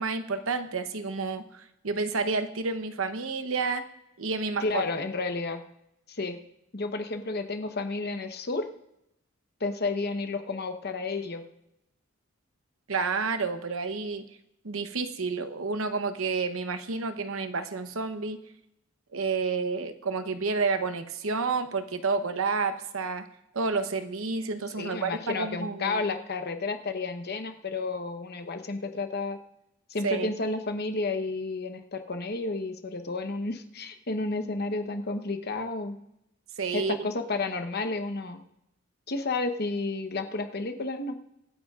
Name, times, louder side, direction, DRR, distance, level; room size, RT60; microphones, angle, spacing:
voice 1, 0.0-3.8 4.2-4.8 12.9-14.3 14.6-18.4 19.1-23.2 23.5-26.0 30.0-30.3 36.6-37.1, right 4 dB, 85° right, 9 dB, 0.9 m, -30 dB
voice 2, 4.6-5.6 6.1-6.4 6.7-8.7 9.6-11.4 24.8-29.4 29.9-36.0 36.7-38.4 39.1-41.1, left 3 dB, 50° left, 7 dB, 1.0 m, -31 dB
24.5 x 9.4 x 2.5 m, 0.83 s
head